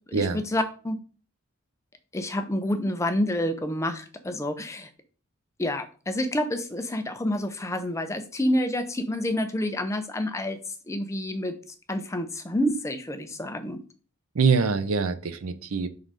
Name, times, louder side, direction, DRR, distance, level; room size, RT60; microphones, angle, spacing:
voice 1, 0.1-1.0 2.1-4.9 5.6-10.6 10.9-11.6 11.9-13.8, left 1 dB, 15° left, 8 dB, 0.5 m, -28 dB
voice 2, 14.3-15.9, right 5 dB, 75° right, 11 dB, 0.6 m, -24 dB
5.4 x 3.8 x 4.7 m, 0.39 s
head